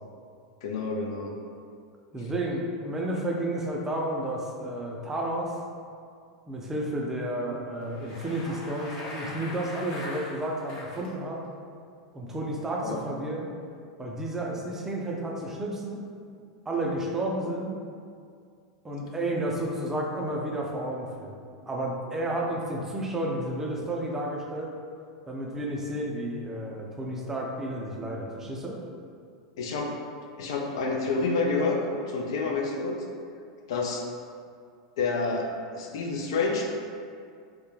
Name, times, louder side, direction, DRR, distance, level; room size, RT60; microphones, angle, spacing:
voice 1, 0.6-1.3 12.8-13.0 29.6-29.9 30.4-31.8 32.1-33.0 33.7-34.0 35.0-36.7, left 3 dB, 75° left, 1 dB, 0.4 m, -28 dB
voice 2, 2.1-5.5 6.5-11.4 12.1-13.5 14.0-16.0 16.7-17.8 18.8-21.3 21.7-24.7 25.3-28.8, right 1 dB, 15° right, -1 dB, 0.4 m, -31 dB
Bicycle, 7.8-11.1, left 1 dB, 45° left, 0.7 m, -41 dB
2.2 x 2.1 x 3.0 m, 2.3 s
hypercardioid pair, 110°, 3 cm